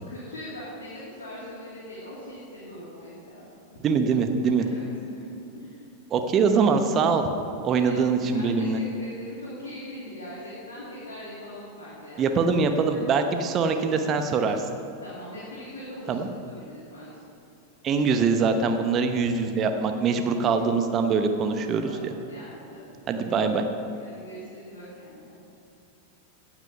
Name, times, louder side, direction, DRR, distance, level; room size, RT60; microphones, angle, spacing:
voice 1, 0.1-3.4 4.6-5.3 5.5-5.8 7.8-8.0 8.3-12.4 12.9-13.1 15.0-16.2 16.4-17.2 18.8-19.2 21.9-22.9 23.8-25.4, left 1 dB, 65° left, -8 dB, 2.6 m, -41 dB
voice 2, 3.8-4.6 6.1-7.3 7.6-8.8 12.2-14.6 16.1-16.3 17.8-21.9 23.1-23.6, right 5 dB, 30° right, 6 dB, 0.9 m, -23 dB
16.5 x 6.1 x 5.7 m, 2.8 s
figure-of-eight pair, 90°, 0 cm